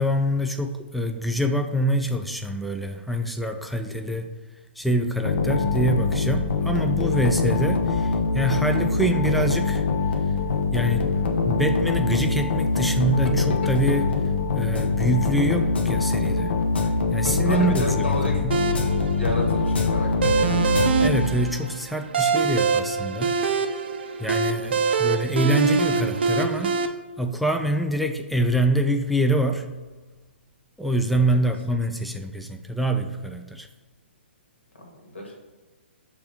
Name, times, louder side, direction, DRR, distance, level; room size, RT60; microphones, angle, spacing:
voice 1, 0.0-4.3 4.8-9.8 10.7-11.1 11.5-14.2 14.5-16.6 17.1-18.2 21.0-23.4 24.2-26.8 27.2-29.7 30.8-33.7, right 1 dB, ahead, 5 dB, 0.4 m, -25 dB
sound 1, 5.2-21.7, left 4 dB, 60° left, 0.9 m, -23 dB
voice 2, 17.5-18.4 19.2-20.6 31.3-31.5 34.8-35.3, equal, 80° left, 0 dB, 1.8 m, -31 dB
sound 2, 18.5-26.9, right 5 dB, 60° right, 0.6 m, -24 dB
6.7 x 2.8 x 5.8 m, 1.3 s
figure-of-eight pair, 125°, 6 cm